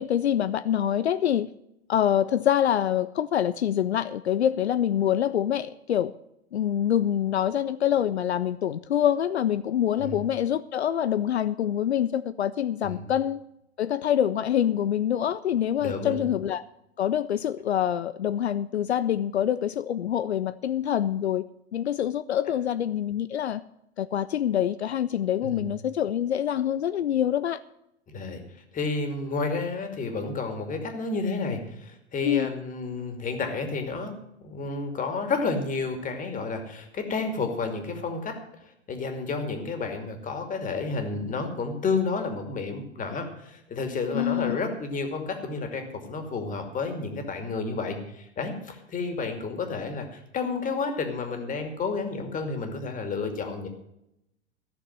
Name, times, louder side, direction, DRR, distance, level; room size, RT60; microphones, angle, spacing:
voice 1, 0.0-1.5 1.9-6.1 6.5-13.4 13.8-16.6 17.0-21.4 21.7-23.6 24.0-27.6 32.2-32.5 44.1-44.6, left 10 dB, 80° left, 15 dB, 0.5 m, -25 dB
voice 2, 15.8-16.2 25.4-25.6 28.1-28.4 28.7-34.1 34.4-38.4 38.9-53.7, left 4 dB, 25° left, 5 dB, 2.5 m, -31 dB
14.5 x 6.7 x 7.3 m, 0.83 s
figure-of-eight pair, 90°, 32 cm